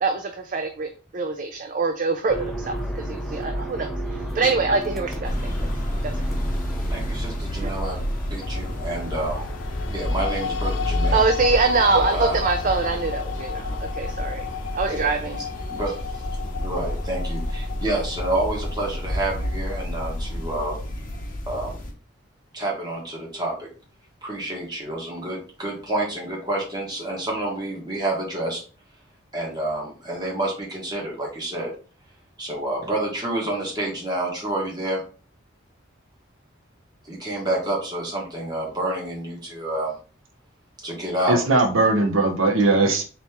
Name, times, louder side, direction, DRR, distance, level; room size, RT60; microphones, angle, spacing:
voice 1, 0.0-5.5 6.0-6.1 7.6-7.7 11.1-14.5 14.7-15.4, right 4 dB, 40° right, 6 dB, 0.4 m, -24 dB
sound 1, 2.3-20.7, equal, ahead, 0.6 m, -34 dB
sound 2, 5.2-21.9, left 1 dB, 40° left, 0.8 m, -30 dB
voice 2, 6.9-8.0 8.3-9.5 9.9-11.2 12.1-12.4 14.9-15.0 15.7-16.2 16.5-20.8 21.5-21.8 22.5-23.7 24.2-28.6 29.3-31.7 32.4-35.0 37.0-39.9 40.8-41.4, right 1 dB, 20° right, -3 dB, 1.4 m, -28 dB
sound 3, 8.4-20.6, left 7 dB, 60° left, 0.4 m, -34 dB
voice 3, 41.3-43.0, right 2 dB, 80° right, 4 dB, 0.8 m, -19 dB
4.1 x 2.9 x 3.5 m, 0.38 s
head